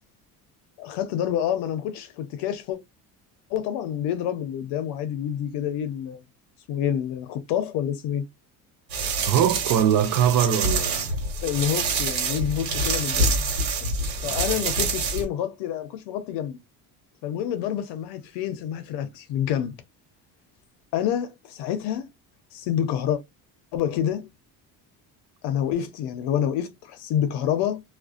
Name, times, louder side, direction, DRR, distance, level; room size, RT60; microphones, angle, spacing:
voice 1, 0.8-2.8 3.5-6.2 6.7-8.3 11.4-13.3 13.8-14.0 14.2-16.6 17.2-19.7 20.9-22.1 22.5-23.2 23.7-24.3 25.4-27.8, left 10 dB, 90° left, 0.7 m, -28 dB
sound 1, 8.9-15.2, right 3 dB, 75° right, 1.3 m, -26 dB
voice 2, 9.2-11.1 14.2-14.4, right 9 dB, 55° right, 0.5 m, -22 dB
2.5 x 2.1 x 2.3 m
cardioid pair, 155°, 39 cm